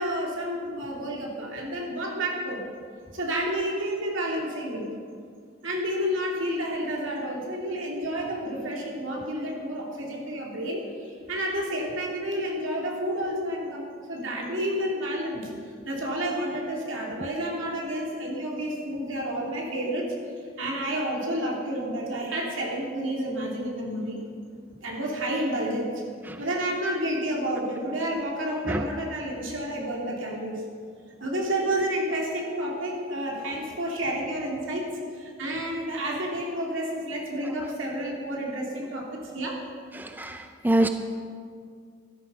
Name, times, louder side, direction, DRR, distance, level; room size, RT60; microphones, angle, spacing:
voice 1, 0.0-2.6 3.1-4.9 5.6-15.5 15.8-20.1 20.6-24.2 24.8-25.9 26.4-30.6 31.2-34.8 35.1-39.6, right 1 dB, 70° right, -2 dB, 2.9 m, -30 dB
voice 2, 39.9-40.9, right 1 dB, 10° right, 7 dB, 0.5 m, -25 dB
13.0 x 13.0 x 5.5 m, 2.2 s
head